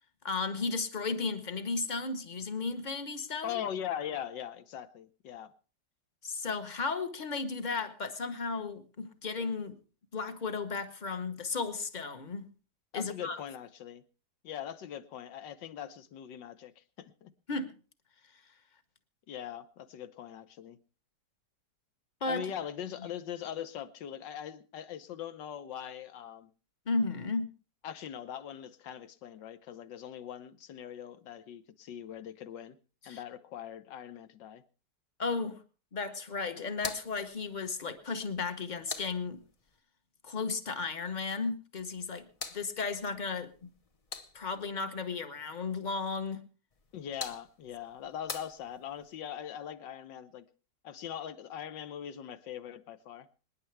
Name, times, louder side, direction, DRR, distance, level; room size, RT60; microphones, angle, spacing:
voice 1, 0.2-3.6 6.2-9.8 10.1-12.5 12.9-13.4 17.5-17.7 22.2-22.5 26.9-27.5 33.0-33.2 35.2-35.6 35.9-39.4 40.2-43.7 44.3-46.4, left 4 dB, 35° left, 0.9 m, -34 dB
voice 2, 3.4-5.5 12.9-14.0 14.4-17.3 19.3-20.8 22.3-26.5 27.8-32.8 33.1-34.6 46.9-50.5 50.8-53.3, left 9 dB, 90° left, 1.6 m, -41 dB
sound 1, 36.7-39.8 41.8-44.7 46.7-49.2, left 4 dB, 60° left, 0.3 m, -46 dB
26.0 x 9.9 x 3.3 m
omnidirectional pair, 1.9 m